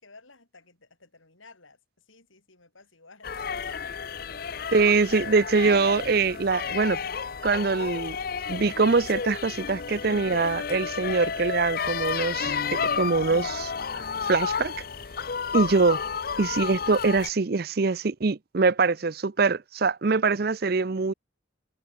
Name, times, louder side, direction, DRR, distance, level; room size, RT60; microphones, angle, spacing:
voice 1, 0.0-3.8, left 3 dB, 85° left, 7.1 m, -55 dB
sound 1, 3.2-17.3, left 6 dB, 50° left, 0.6 m, -31 dB
voice 2, 4.7-7.0 7.4-8.2 8.5-13.7 14.2-14.7 15.5-16.0 16.4-21.1, right 4 dB, 50° right, 0.6 m, -23 dB
head